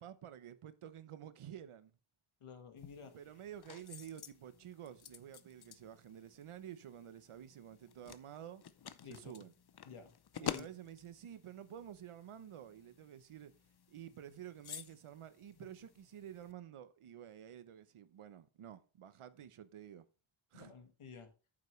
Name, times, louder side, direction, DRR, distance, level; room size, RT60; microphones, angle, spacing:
voice 1, 0.0-1.9 3.1-8.6 9.1-9.5 10.4-13.5 13.9-20.0 20.5-20.7, right 10 dB, 90° right, 0.9 m, -51 dB
voice 2, 2.4-3.1 9.0-9.3 9.8-10.7 20.5-21.3, left 6 dB, 85° left, 1.8 m, -52 dB
sound 1, 2.8-16.5, left 8 dB, 50° left, 0.7 m, -51 dB
9.4 x 7.4 x 3.2 m
wide cardioid pair, 125°, 49 cm